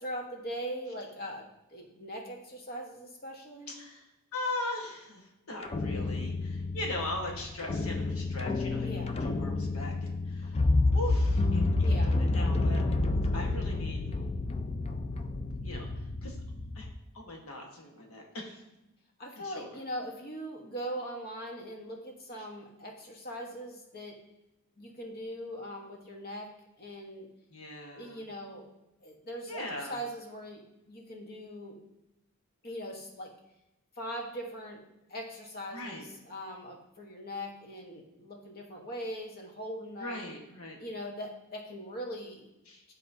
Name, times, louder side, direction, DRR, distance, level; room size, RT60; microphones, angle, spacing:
voice 1, 0.0-3.7 8.8-9.2 11.8-12.2 19.2-24.2 24.8-26.5 26.8-27.3 27.9-28.7 29.0-31.8 32.6-33.3 34.0-34.8 35.1-40.2 40.8-42.5, equal, 45° left, 1 dB, 1.2 m, -41 dB
voice 2, 3.7-10.6 10.9-12.8 13.3-14.0 15.6-15.9 16.2-16.4 16.7-16.9 17.1-18.6 19.4-19.7 27.5-28.2 29.5-30.0 35.7-36.1 40.0-40.8 42.7-42.8, left 2 dB, 85° left, 0 dB, 1.3 m, -39 dB
sound 1, 5.6-16.9, left 2 dB, 30° left, 0.3 m, -29 dB
11.0 x 4.1 x 2.7 m, 0.95 s
head